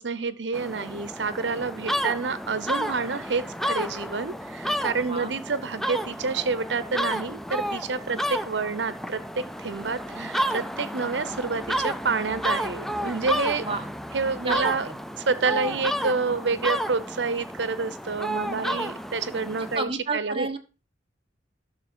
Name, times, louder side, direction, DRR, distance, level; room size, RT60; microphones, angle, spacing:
voice 1, 0.0-13.6 14.1-14.9 15.3-20.6, right 4 dB, 75° right, 15 dB, 0.9 m, -28 dB
sound 1, 0.5-19.8, equal, ahead, 0.4 m, -31 dB
voice 2, 9.8-10.3 13.6-13.8 14.4-15.0 15.7-15.8 18.3-18.9 19.7-20.6, right 3 dB, 30° right, 4 dB, 1.3 m, -33 dB
12.5 x 6.4 x 4.4 m, 0.35 s
head